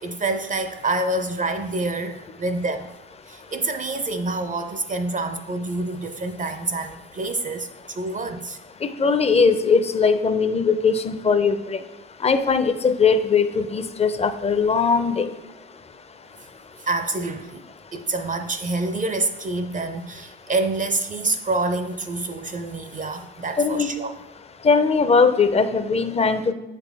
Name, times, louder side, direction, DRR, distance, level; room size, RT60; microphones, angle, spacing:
voice 1, 0.0-2.9 3.2-8.6 16.8-17.6 17.9-24.1, right 2 dB, 25° right, 8 dB, 0.5 m, -27 dB
voice 2, 8.8-11.8 12.2-15.3 23.6-23.9 24.6-26.5, left 5 dB, 20° left, 10 dB, 0.6 m, -20 dB
7.9 x 4.1 x 3.4 m, 1.0 s
hypercardioid pair, 60°, 30 cm